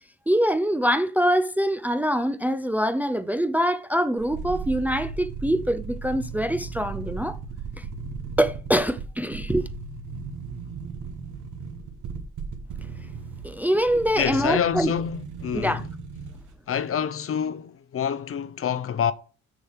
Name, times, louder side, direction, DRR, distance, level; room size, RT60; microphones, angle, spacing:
voice 1, 0.3-7.4 7.8-7.9 8.4-9.7 13.4-14.9 15.5-15.8, equal, 5° right, 0.5 m, -24 dB
sound 1, 4.2-16.6 16.8-16.9, right 5 dB, 75° right, 1.3 m, -36 dB
voice 2, 14.2-15.9 16.7-19.1, left 8 dB, 45° left, 0.7 m, -27 dB
6.7 x 6.3 x 4.6 m
cardioid pair, 90°, 30 cm